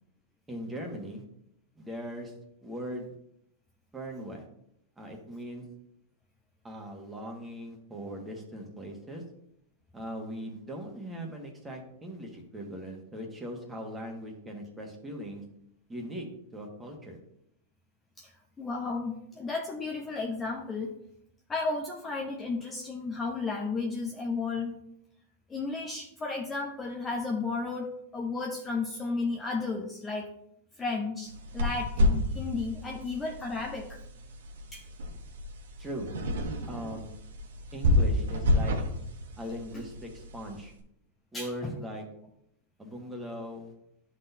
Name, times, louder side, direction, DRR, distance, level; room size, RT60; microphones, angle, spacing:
voice 1, 0.5-1.2 1.8-2.3 2.6-3.1 3.9-4.4 5.0-5.6 6.6-9.2 9.9-15.4 15.9-16.3 16.5-17.2 35.8-36.1 36.7-37.1 37.7-38.8 39.4-40.7 41.3-42.0 42.8-43.7, equal, 10° right, 1 dB, 1.5 m, -39 dB
voice 2, 18.6-20.9 21.5-24.7 25.5-27.9 28.1-30.3 30.8-34.0 34.7-34.8 41.3-41.7, left 3 dB, 15° left, -1 dB, 0.8 m, -33 dB
sound 1, 31.3-40.6, left 1 dB, 85° right, 1.1 m, -30 dB
11.0 x 4.0 x 2.8 m, 0.75 s
supercardioid pair, 135°, 0 cm